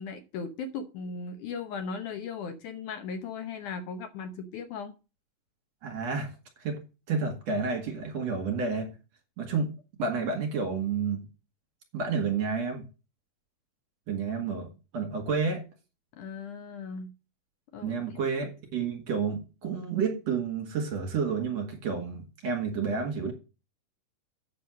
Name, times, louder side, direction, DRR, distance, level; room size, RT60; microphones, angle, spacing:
voice 1, 0.0-4.9 16.1-17.1 17.7-18.2, left 5 dB, 70° left, 2.1 m, -37 dB
voice 2, 5.8-6.3 6.6-6.8 7.1-8.9 9.4-11.3 11.9-12.9 14.1-15.6 17.8-23.3, right 5 dB, 50° right, 2.9 m, -30 dB
8.5 x 6.8 x 6.2 m
omnidirectional pair, 4.3 m